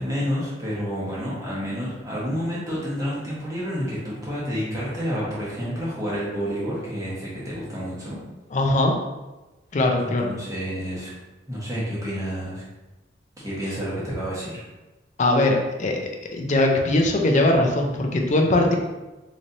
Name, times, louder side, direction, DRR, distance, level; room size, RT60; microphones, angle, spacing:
voice 1, 0.0-8.2 10.0-11.1 11.5-12.6 13.4-14.6, equal, 20° right, -7 dB, 1.2 m, -29 dB
voice 2, 8.5-8.9 9.7-10.3 15.2-16.0 16.3-18.8, left 2 dB, 40° left, 1 dB, 0.5 m, -20 dB
4.0 x 3.2 x 2.6 m, 1.1 s
head